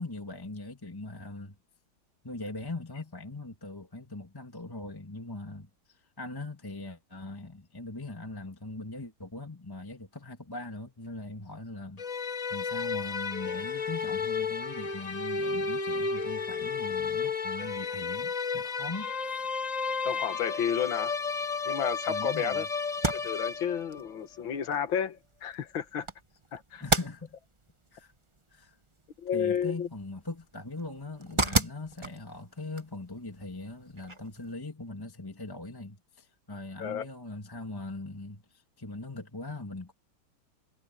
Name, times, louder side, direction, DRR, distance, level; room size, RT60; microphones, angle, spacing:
voice 1, 0.0-1.6 2.2-19.4 22.1-22.7 26.8-27.4 27.9-28.1 28.5-28.8 29.3-39.9, left 2 dB, 10° left, 2.1 m, -41 dB
sound 1, 12.0-24.1, left 5 dB, 30° left, 0.7 m, -32 dB
voice 2, 20.1-21.1 21.7-22.7 23.1-26.1 26.5-26.8 29.2-29.9 36.8-37.1, left 8 dB, 85° left, 2.2 m, -31 dB
sound 2, 22.9-34.5, right 2 dB, 15° right, 1.3 m, -36 dB
omnidirectional pair, 2.1 m